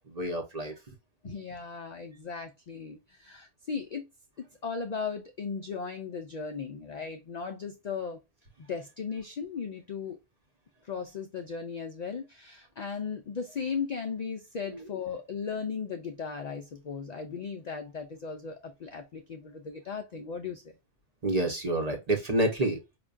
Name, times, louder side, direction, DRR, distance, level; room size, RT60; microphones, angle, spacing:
voice 1, 0.1-0.7 14.6-14.9 21.2-23.0, right 1 dB, 40° right, 0.8 m, -29 dB
voice 2, 1.2-4.1 4.6-8.2 8.7-10.2 10.8-20.6, left 5 dB, 70° left, 0.4 m, -37 dB
4.9 x 2.2 x 2.3 m
omnidirectional pair, 1.2 m